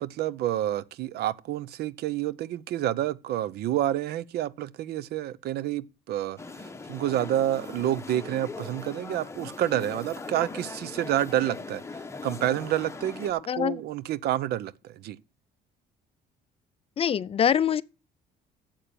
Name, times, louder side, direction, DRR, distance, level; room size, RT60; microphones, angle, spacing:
voice 1, 0.0-15.2, right 12 dB, 70° right, 0.6 m, -29 dB
sound 1, 6.4-13.3, left 3 dB, 15° left, 1.0 m, -40 dB
voice 2, 13.5-13.8 17.0-17.8, left 8 dB, 35° left, 0.5 m, -24 dB
8.7 x 7.7 x 6.8 m
cardioid pair, 110°, 17 cm